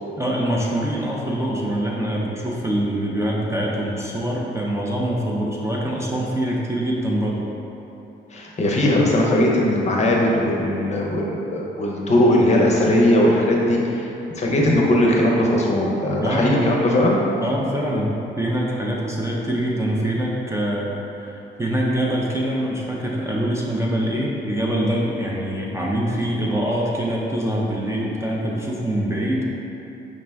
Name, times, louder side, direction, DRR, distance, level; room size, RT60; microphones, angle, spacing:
voice 1, 0.2-7.4 16.2-16.9 17.4-20.9 21.2-29.4, right 1 dB, 15° right, -4 dB, 0.4 m, -24 dB
voice 2, 8.3-11.2 11.5-14.1 14.4-17.2, left 1 dB, 35° left, -2 dB, 0.6 m, -19 dB
5.0 x 2.1 x 3.4 m, 3.0 s
cardioid pair, 90°, 20 cm